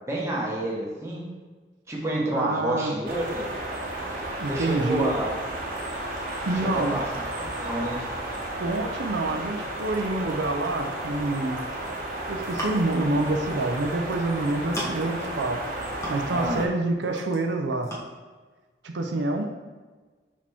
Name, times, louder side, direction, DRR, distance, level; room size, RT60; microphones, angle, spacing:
voice 1, 0.1-1.2 1.9-3.4 4.5-5.3 6.7-8.0 16.3-16.6, right 1 dB, 15° right, -3 dB, 1.1 m, -29 dB
voice 2, 2.3-2.9 4.4-5.1 6.5-7.0 8.6-11.6 12.3-15.6 16.1-17.9 18.8-19.5, right 2 dB, 80° right, 3 dB, 0.6 m, -27 dB
sound 1, 3.1-16.7, right 1 dB, 45° right, 1.1 m, -33 dB
sound 2, 12.4-13.0 14.0-14.2 14.5-15.2 15.6-16.5 16.8-17.5 17.8-18.0, equal, 15° left, 1.1 m, -36 dB
5.9 x 4.9 x 3.5 m, 1.4 s
head